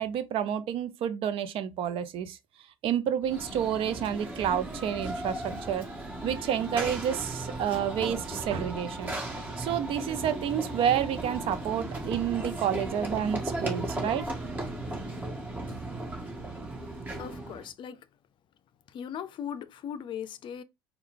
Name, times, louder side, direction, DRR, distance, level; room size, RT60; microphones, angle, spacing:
voice 1, 0.0-2.4 2.8-5.8 6.2-9.1 9.6-14.3, right 9 dB, 60° right, 0.7 m, -29 dB
Run / Train, 3.2-17.7, right 2 dB, 15° right, 1.8 m, -36 dB
voice 2, 17.2-18.0 18.9-20.6, left 8 dB, 50° left, 0.5 m, -38 dB
4.4 x 2.3 x 3.7 m
supercardioid pair, 90°, 11 cm